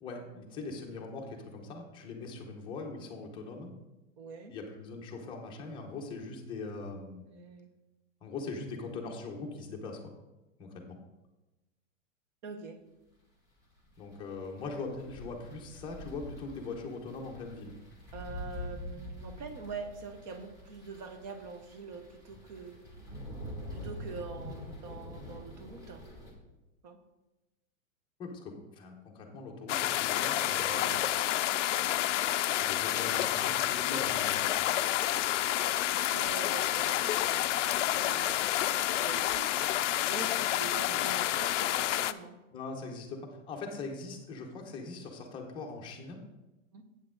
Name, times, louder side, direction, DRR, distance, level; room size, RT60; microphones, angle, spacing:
voice 1, 0.0-3.7 4.5-7.2 8.2-10.1 10.6-11.0 14.0-17.7 28.2-31.0 32.6-34.5 42.5-46.2, left 3 dB, 10° left, 0 dB, 0.7 m, -41 dB
voice 2, 4.2-4.6 7.2-7.7 12.4-12.8 18.1-22.8 23.7-26.0 26.8-27.0 30.5-32.1 32.8-33.0 34.6-34.9 36.1-39.5 40.1-42.4 46.7-46.8, right 4 dB, 35° right, 8 dB, 0.8 m, -45 dB
sound 1, 13.6-26.3, equal, 10° right, 1.3 m, -45 dB
sound 2, 29.7-42.1, left 13 dB, 65° left, 0.5 m, -29 dB
8.4 x 8.1 x 3.7 m, 1.0 s
supercardioid pair, 165°, 40 cm